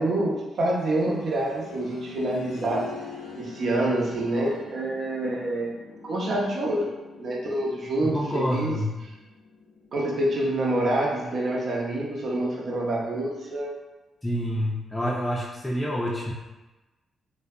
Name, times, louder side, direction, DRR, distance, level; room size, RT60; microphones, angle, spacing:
voice 1, 0.0-2.9 3.4-5.8 6.0-6.9 7.2-8.8 9.9-13.7, right 1 dB, 60° right, -3 dB, 0.5 m, -27 dB
sound 1, 0.6-11.3 11.6-11.7 12.6-12.7, left 3 dB, 85° left, 0.3 m, -44 dB
voice 2, 8.0-8.9 14.2-16.3, equal, 10° left, -4 dB, 0.4 m, -27 dB
2.5 x 2.1 x 2.3 m, 1.1 s
hypercardioid pair, 40°, 0 cm